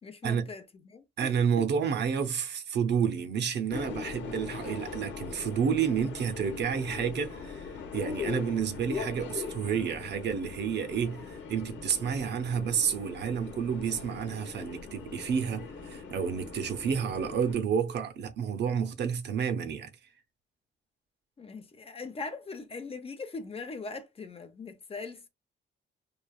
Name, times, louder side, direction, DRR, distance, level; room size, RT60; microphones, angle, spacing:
voice 1, 0.0-1.7 21.4-25.3, left 3 dB, 30° left, 0.6 m, -41 dB
voice 2, 1.2-19.9, right 7 dB, 60° right, 0.6 m, -30 dB
Subway metro underground, 3.7-17.5, left 5 dB, 70° left, 0.8 m, -41 dB
3.1 x 2.4 x 2.3 m
cardioid pair, 90°, 20 cm